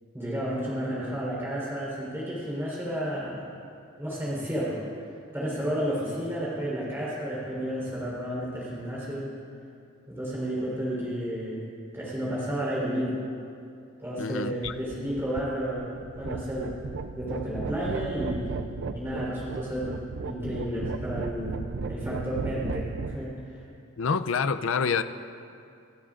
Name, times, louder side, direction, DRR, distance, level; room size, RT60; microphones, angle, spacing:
voice 1, 0.1-3.5 4.0-4.8 5.3-9.3 10.1-11.6 11.9-13.2 14.0-16.7 17.1-18.5 18.9-20.0 20.2-21.6 21.9-23.6, equal, 10° right, -7 dB, 4.0 m, -31 dB
voice 2, 14.2-14.7 24.0-25.0, left 5 dB, 70° left, 10 dB, 0.5 m, -27 dB
sound 1, 14.6-23.2, right 4 dB, 60° right, 0.5 m, -35 dB
28.5 x 13.5 x 2.5 m, 2.5 s
head